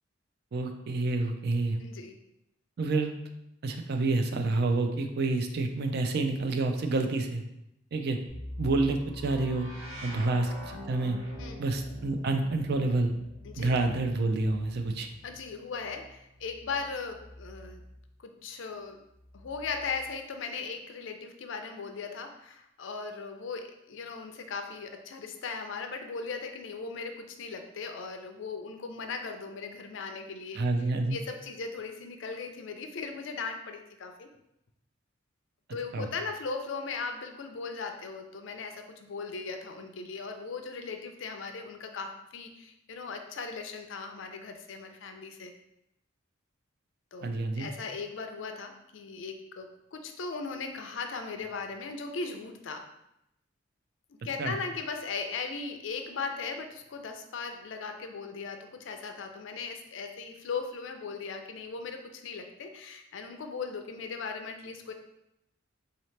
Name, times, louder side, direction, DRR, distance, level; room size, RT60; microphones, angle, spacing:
voice 1, 0.5-1.8 2.8-3.1 3.6-7.4 7.9-8.2 8.6-9.7 10.0-11.2 11.6-13.1 13.6-15.1 30.5-31.2 35.9-36.1 47.2-47.7 54.4-54.5, right 2 dB, 55° right, 6 dB, 0.4 m, -28 dB
voice 2, 1.8-2.1 10.2-10.3 11.4-11.6 13.4-13.7 15.2-17.8 18.2-19.0 19.3-30.6 31.1-34.3 35.7-45.5 47.1-52.8 54.2-64.9, left 4 dB, 65° left, 6 dB, 0.4 m, -38 dB
sound 1, 8.3-18.1 19.1-20.1, left 1 dB, 75° right, 0.9 m, -45 dB
4.0 x 2.8 x 3.2 m, 0.83 s
head